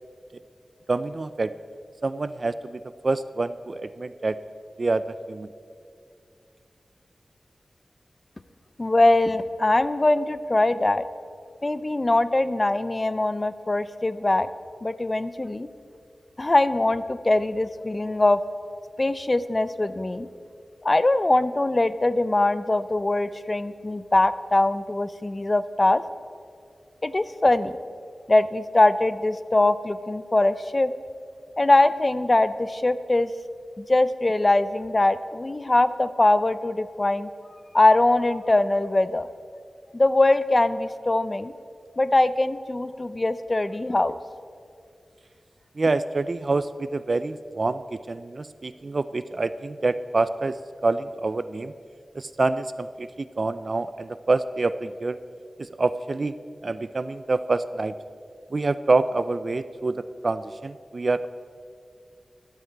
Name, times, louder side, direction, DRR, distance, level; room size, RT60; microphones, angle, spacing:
voice 1, 0.9-1.5 2.0-4.4 4.8-5.0 5.3-5.5 45.8-47.8 48.1-50.5 50.8-51.7 52.1-55.2 55.6-56.3 56.6-57.9 58.5-61.3, right 3 dB, 50° right, 13 dB, 0.3 m, -26 dB
voice 2, 8.8-11.0 11.6-14.5 14.8-15.7 16.4-18.4 19.0-20.3 20.8-26.0 27.0-27.7 28.3-30.9 31.6-33.3 33.8-37.3 37.7-39.3 39.9-41.5 42.0-44.1, left 2 dB, 30° left, 14 dB, 0.4 m, -22 dB
12.5 x 12.0 x 4.5 m, 2.3 s
wide cardioid pair, 100°, 0 cm